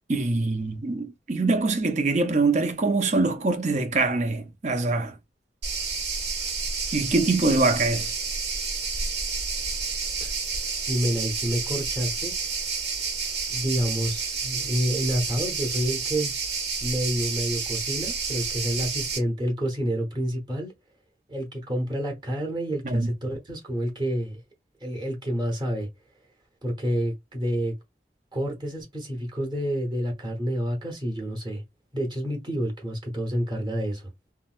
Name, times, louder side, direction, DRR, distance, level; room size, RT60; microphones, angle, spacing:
voice 1, 0.1-5.2 6.9-8.1 22.8-23.1, right 3 dB, 40° right, 0.6 m, -24 dB
sound 1, 5.6-19.2, right 4 dB, 75° right, 1.4 m, -30 dB
voice 2, 10.9-12.4 13.5-16.3 16.8-20.7 21.3-24.4 24.8-25.9 26.6-27.7 28.3-31.6 31.9-34.1, equal, 25° right, 1.0 m, -28 dB
3.8 x 2.1 x 2.4 m
head